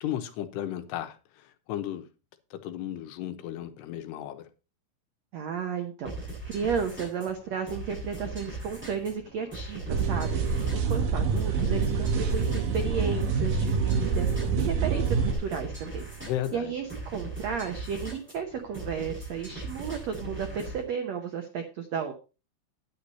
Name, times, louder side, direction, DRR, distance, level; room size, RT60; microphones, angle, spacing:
voice 1, 0.0-2.1 2.5-4.4 16.2-16.7, left 12 dB, 85° left, 3.1 m, -34 dB
voice 2, 5.3-22.1, right 6 dB, 85° right, 1.5 m, -33 dB
sound 1, 6.0-20.8, right 2 dB, ahead, 7.4 m, -40 dB
sound 2, 9.9-15.3, right 5 dB, 65° right, 3.3 m, -26 dB
9.8 x 9.6 x 4.2 m
omnidirectional pair, 4.7 m